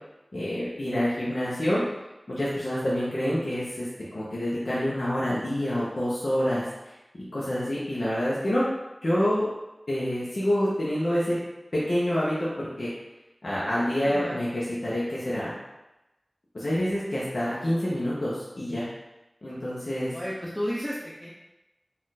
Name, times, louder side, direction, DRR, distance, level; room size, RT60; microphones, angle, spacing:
voice 1, 0.3-1.8 2.3-3.9 4.1-6.6 7.3-8.6 9.0-9.5 9.9-11.4 11.7-12.9 13.4-15.5 16.5-18.9 19.4-20.1, equal, 70° left, -8 dB, 0.9 m, -27 dB
voice 2, 14.0-14.4 20.1-21.3, equal, 15° left, -7 dB, 0.7 m, -32 dB
4.2 x 2.5 x 4.1 m, 0.99 s
wide cardioid pair, 60°, 0 cm